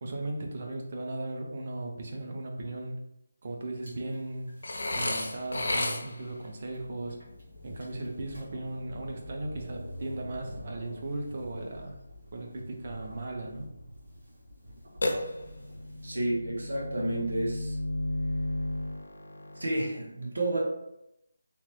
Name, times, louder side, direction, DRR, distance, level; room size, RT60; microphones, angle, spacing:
voice 1, 0.0-3.0 3.4-4.5 5.0-7.2 7.6-12.0 12.3-13.7, right 2 dB, 25° right, 2 dB, 0.3 m, -37 dB
sound 1, 3.7-16.1, equal, 45° right, 1.2 m, -47 dB
Burping eructation, 4.6-6.3 15.0-15.8, left 2 dB, 50° left, 0.4 m, -31 dB
sound 2, 15.1-19.9, left 1 dB, 85° left, 0.7 m, -35 dB
voice 2, 16.0-17.8 19.5-20.6, right 1 dB, 70° right, -3 dB, 0.9 m, -30 dB
2.8 x 2.1 x 3.0 m, 0.83 s
figure-of-eight pair, 180°, 0 cm